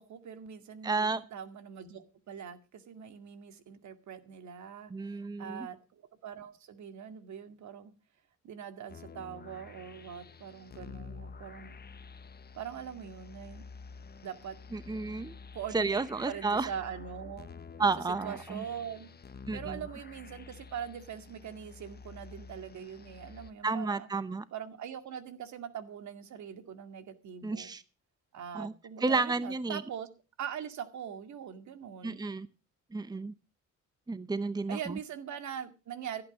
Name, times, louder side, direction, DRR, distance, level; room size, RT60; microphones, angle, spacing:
voice 1, 0.0-7.9 8.4-11.8 12.5-13.6 14.2-14.6 15.5-16.0 16.3-17.5 18.2-19.1 19.5-24.1 24.5-27.7 28.3-30.1 30.4-32.3 34.7-36.2, right 8 dB, 70° right, 9 dB, 2.2 m, -42 dB
voice 2, 0.8-1.2 4.9-5.7 14.7-15.3 15.7-16.7 17.8-18.6 19.5-19.8 23.6-24.4 27.4-27.8 28.5-28.7 29.0-29.8 32.0-32.5 32.9-33.3 34.1-35.0, right 3 dB, 15° right, 15 dB, 0.8 m, -31 dB
sound 1, 8.9-23.5, left 5 dB, 30° left, 1.0 m, -49 dB
15.5 x 8.9 x 6.1 m, 0.31 s
cardioid pair, 90°, 30 cm